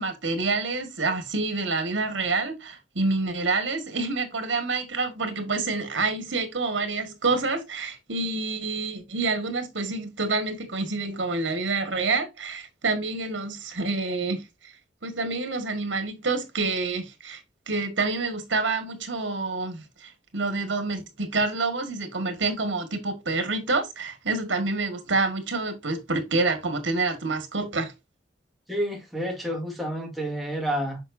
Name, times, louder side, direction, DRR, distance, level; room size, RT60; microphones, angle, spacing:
voice 1, 0.0-14.7 15.0-17.4 17.7-27.9, right 3 dB, 80° right, 1.8 m, -27 dB
voice 2, 28.7-31.0, equal, ahead, 1.9 m, -29 dB
7.7 x 5.8 x 2.7 m
head